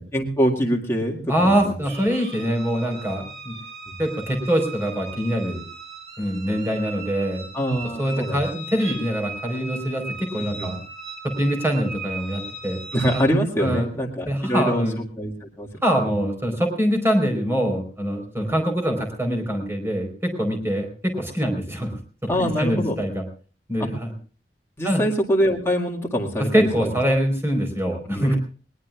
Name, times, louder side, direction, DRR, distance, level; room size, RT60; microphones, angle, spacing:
voice 1, 0.0-1.7 3.9-4.0 7.5-8.4 10.4-10.7 12.9-14.9 15.2-15.7 16.0-16.1 18.4-18.5 22.3-23.0 23.8-23.9 24.8-26.9 28.1-28.3, equal, 15° left, -2 dB, 2.0 m, -24 dB
voice 2, 1.3-3.5 4.0-5.6 6.2-7.5 8.0-10.8 11.2-12.8 13.1-13.2 13.6-13.9 14.3-15.0 15.8-21.9 22.2-23.2 23.7-24.1 24.8-25.0 26.4-28.4, equal, 15° right, 3 dB, 4.3 m, -24 dB
sound 1, 1.8-13.2, right 3 dB, 65° right, 5.8 m, -38 dB
20.5 x 20.0 x 2.4 m, 0.39 s
head